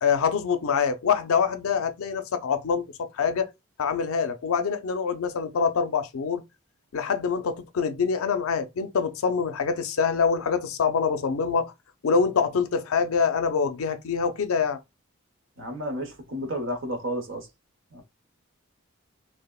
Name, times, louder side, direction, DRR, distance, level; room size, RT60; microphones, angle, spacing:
voice 1, 0.0-3.5 3.8-6.4 6.9-11.7 12.0-14.8, left 6 dB, 85° left, 0.5 m, -25 dB
voice 2, 15.6-17.5 17.9-18.0, equal, 65° right, 0.9 m, -32 dB
3.3 x 2.0 x 2.2 m
head